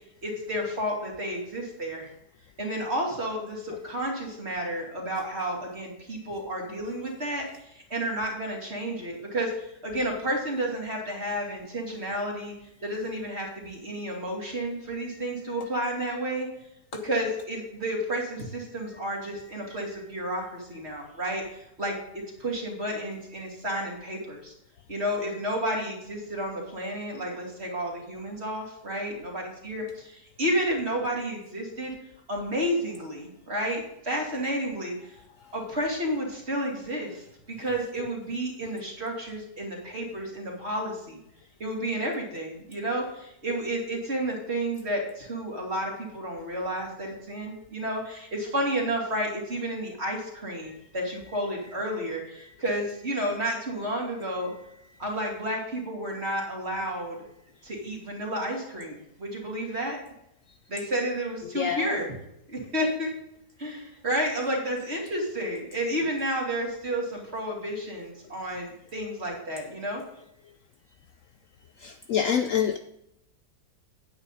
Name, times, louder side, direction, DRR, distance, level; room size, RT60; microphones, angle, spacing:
voice 1, 0.2-2.1 2.6-12.5 12.8-16.5 17.0-24.5 24.9-31.9 32.3-35.1 35.5-41.2 41.6-54.5 55.0-57.2 57.6-60.0 60.7-62.1 62.5-63.1 63.6-70.0, right 1 dB, 40° right, -1 dB, 2.8 m, -31 dB
voice 2, 61.4-62.0 71.8-72.8, left 8 dB, 70° left, 9 dB, 0.8 m, -27 dB
9.8 x 8.7 x 4.1 m, 0.81 s
omnidirectional pair, 1.8 m